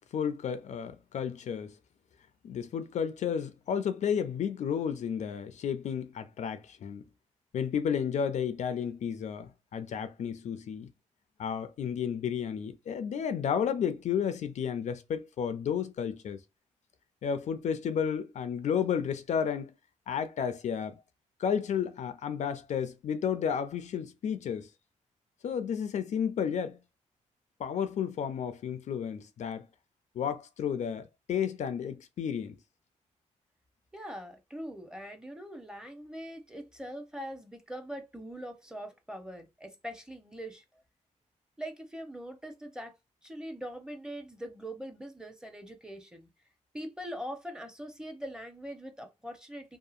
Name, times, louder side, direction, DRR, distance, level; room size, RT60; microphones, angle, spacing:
voice 1, 0.1-1.8 2.4-7.0 7.5-10.9 11.4-16.4 17.2-19.7 20.1-21.0 21.4-24.7 25.4-26.8 27.6-29.7 30.2-32.6, left 7 dB, 65° left, 0.4 m, -32 dB
voice 2, 33.9-40.6 41.6-43.0 43.2-46.3 46.7-49.8, equal, 5° right, 0.7 m, -42 dB
2.7 x 2.4 x 2.4 m
cardioid pair, 90°, 13 cm